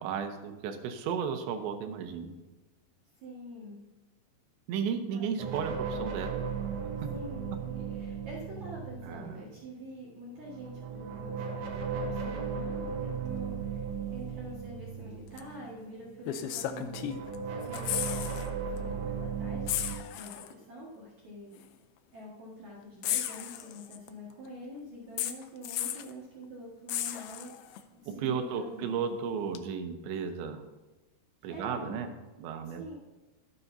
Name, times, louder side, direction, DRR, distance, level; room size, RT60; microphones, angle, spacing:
voice 1, 0.0-2.4 4.7-6.3 9.0-9.5 28.1-30.6 31.4-32.1 32.4-32.9, right 6 dB, 85° right, 6 dB, 3.3 m, -34 dB
voice 2, 3.2-3.8 5.1-5.5 7.1-21.5 22.1-27.5 27.9-29.1 31.5-32.0 32.6-32.9, equal, 50° right, -6 dB, 2.6 m, -46 dB
sound 1, 5.4-9.6 10.4-16.1 16.5-20.0, right 6 dB, 70° right, 3.1 m, -36 dB
sound 2, 15.4-15.5 16.3-17.4 17.6-18.5 18.8-18.9 19.7-20.5 21.6-21.7 23.0-24.1 25.2-26.1 26.9-27.8 29.6-29.7, left 12 dB, 85° left, 2.2 m, -34 dB
13.0 x 12.0 x 2.7 m, 1.1 s
omnidirectional pair, 5.1 m